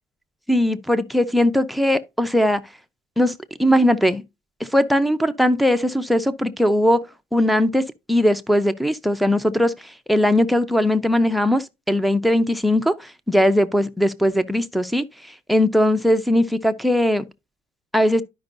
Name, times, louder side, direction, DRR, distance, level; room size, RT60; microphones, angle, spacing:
voice 1, 0.5-2.6 3.2-3.3 3.6-4.2 4.7-7.0 7.3-9.7 10.1-15.1 15.5-17.2 17.9-18.2, left 1 dB, ahead, 0.6 m, -19 dB
12.0 x 5.3 x 2.6 m
cardioid pair, 110°, 17 cm